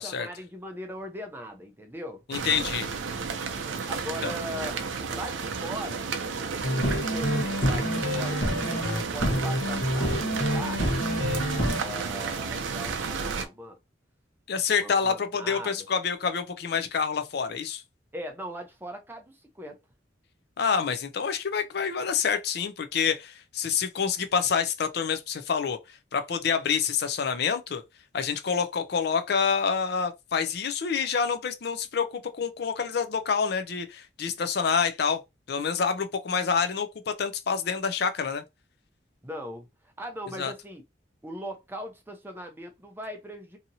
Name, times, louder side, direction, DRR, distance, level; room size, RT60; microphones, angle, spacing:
voice 1, 0.0-2.2 3.9-4.8 5.1-6.1 6.6-10.8 11.7-13.8 14.8-15.9 18.1-19.8 39.2-40.8 41.2-43.6, equal, 10° right, 0.5 m, -39 dB
voice 2, 2.3-2.9 4.2-4.3 14.5-17.8 20.6-27.8 28.1-35.2 35.5-38.4 40.4-40.5, left 6 dB, 55° left, 0.4 m, -27 dB
sound 1, 2.3-13.5, right 5 dB, 85° right, 0.5 m, -32 dB
sound 2, 6.6-11.8, equal, 75° left, 1.0 m, -27 dB
2.8 x 2.6 x 2.6 m
head